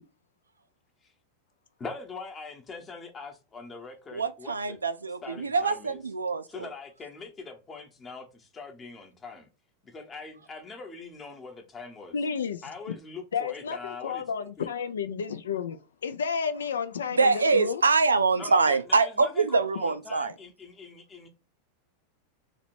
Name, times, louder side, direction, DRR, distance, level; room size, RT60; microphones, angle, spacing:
voice 1, 1.8-4.8 5.2-6.0 6.5-9.5 9.8-12.2 12.6-14.7 18.3-21.3, left 4 dB, 20° left, 0.9 m, -43 dB
voice 2, 4.1-6.7 17.2-20.3, right 4 dB, 75° right, 0.3 m, -24 dB
voice 3, 12.1-13.0 13.3-17.8, left 6 dB, 65° left, 0.3 m, -32 dB
2.9 x 2.9 x 4.3 m
figure-of-eight pair, 90°, 0 cm